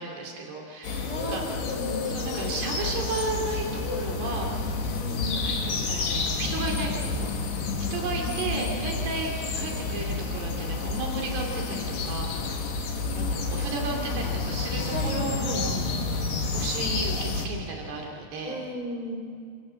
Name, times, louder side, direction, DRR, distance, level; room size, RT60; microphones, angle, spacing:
voice 1, 0.0-1.6 2.0-4.8 5.4-12.8 13.1-16.0 16.5-18.6, right 3 dB, 75° right, 0 dB, 4.8 m, -34 dB
sound 1, 0.8-17.5, left 3 dB, 80° left, 4.5 m, -30 dB
voice 2, 1.0-2.1 5.0-5.6 7.9-8.9 13.0-14.2 14.9-15.7 18.4-19.2, equal, 10° left, 2 dB, 3.1 m, -36 dB
28.5 x 26.0 x 7.5 m, 2.3 s
omnidirectional pair, 4.7 m